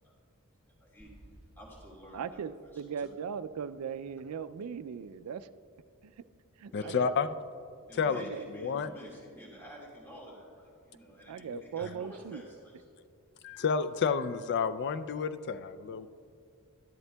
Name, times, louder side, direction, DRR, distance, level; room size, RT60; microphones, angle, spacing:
voice 1, 0.8-1.1 1.6-3.2 6.7-7.1 7.9-12.8, equal, 10° left, -5 dB, 1.8 m, -50 dB
sound 1, 1.0-4.0, right 1 dB, 5° right, 2.0 m, -58 dB
voice 2, 2.1-5.5 6.0-6.3 6.6-7.1 8.1-8.5 11.3-12.4, right 7 dB, 75° right, 14 dB, 0.4 m, -39 dB
voice 3, 6.7-7.3 7.9-8.9 11.5-11.9 13.4-16.1, left 6 dB, 50° left, 12 dB, 0.4 m, -31 dB
12.0 x 10.5 x 2.2 m, 2.5 s
head